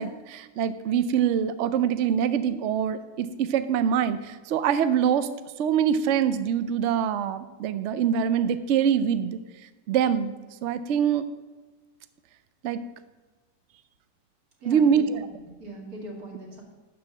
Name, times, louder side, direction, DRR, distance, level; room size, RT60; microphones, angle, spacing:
voice 1, 0.0-5.3 5.6-9.4 9.9-10.3 10.6-11.3 12.6-12.8 14.7-15.2, right 8 dB, 80° right, 12 dB, 0.6 m, -24 dB
voice 2, 14.6-16.6, right 2 dB, 55° right, -1 dB, 2.7 m, -41 dB
12.0 x 4.2 x 7.5 m, 1.2 s
omnidirectional pair, 1.9 m